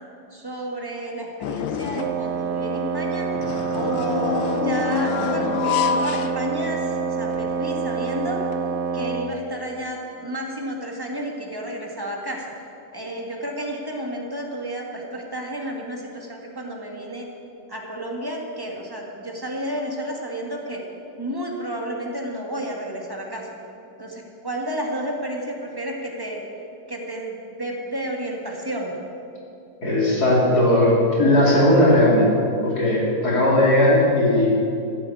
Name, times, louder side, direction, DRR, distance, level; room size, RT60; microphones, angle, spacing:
voice 1, 0.3-3.3 3.7-8.4 8.9-12.5 12.9-17.3 17.7-20.8 21.2-23.5 24.0-28.9, right 1 dB, 10° right, -1 dB, 1.8 m, -31 dB
sound 1, 1.4-2.3 3.3-7.0 7.4-7.5 8.5-8.6, left 8 dB, 80° left, 1.4 m, -27 dB
Wind instrument woodwind instrument, 2.0-9.4, right 5 dB, 65° right, 1.2 m, -27 dB
voice 2, 29.8-32.3 32.6-34.6, left 1 dB, 55° left, -4 dB, 3.1 m, -17 dB
15.5 x 8.6 x 8.5 m, 2.7 s
omnidirectional pair, 2.1 m